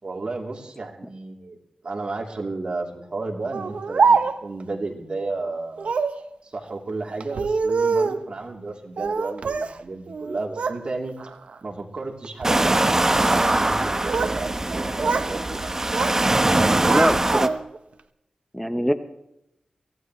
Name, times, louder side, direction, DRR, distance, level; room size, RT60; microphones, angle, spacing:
voice 1, 0.0-1.6 1.8-5.9 6.4-11.2 11.6-15.6, right 3 dB, 55° right, 0 dB, 3.2 m, -32 dB
Speech, 3.5-4.6 5.8-6.2 7.2-8.3 9.0-9.8 10.1-10.8 11.2-11.6 12.2-12.6 13.7-14.4 14.7-15.3 15.6-16.2 16.5-17.8, right 5 dB, 80° right, 0.9 m, -25 dB
sound 1, 12.4-17.5, right 2 dB, 25° right, 1.1 m, -22 dB
voice 2, 16.9-17.6 18.5-18.9, equal, 5° left, 8 dB, 0.9 m, -22 dB
24.0 x 17.0 x 3.2 m, 0.84 s
wide cardioid pair, 110°, 2 cm